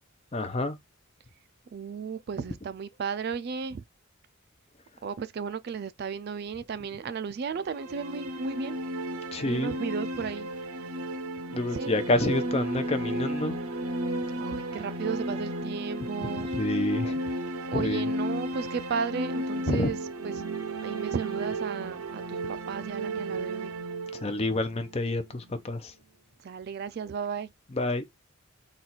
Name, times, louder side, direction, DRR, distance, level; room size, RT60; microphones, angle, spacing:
voice 1, 0.3-0.8 9.3-9.8 11.5-13.6 16.5-17.2 17.7-18.1 19.7-19.9 24.2-25.9 27.7-28.1, left 2 dB, 30° left, 0.5 m, -28 dB
voice 2, 1.7-3.8 5.0-8.8 9.4-10.5 11.7-11.9 14.4-16.5 17.7-20.0 20.2-20.5 20.8-22.4 22.7-23.7 26.4-27.5, right 6 dB, 45° right, 0.3 m, -34 dB
sound 1, 7.6-25.5, right 1 dB, 85° right, 0.6 m, -33 dB
4.0 x 2.4 x 4.2 m
head